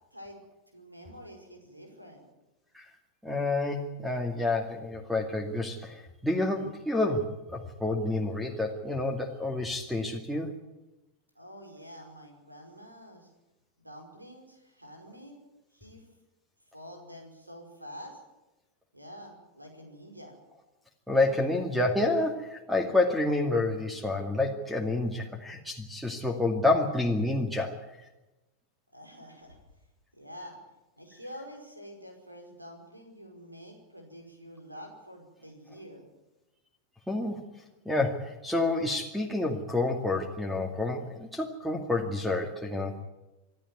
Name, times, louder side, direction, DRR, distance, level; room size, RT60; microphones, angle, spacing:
voice 1, 0.7-2.3 11.4-13.3 13.8-15.3 15.7-16.0 16.7-18.2 18.9-20.4 28.9-29.6 30.1-30.6 31.0-36.1, equal, 85° right, 4 dB, 5.3 m, -47 dB
voice 2, 3.2-10.5 21.1-27.8 37.1-37.4 37.9-43.0, left 2 dB, 5° right, 5 dB, 2.3 m, -29 dB
25.5 x 13.0 x 9.6 m, 1.0 s
figure-of-eight pair, 90°, 0 cm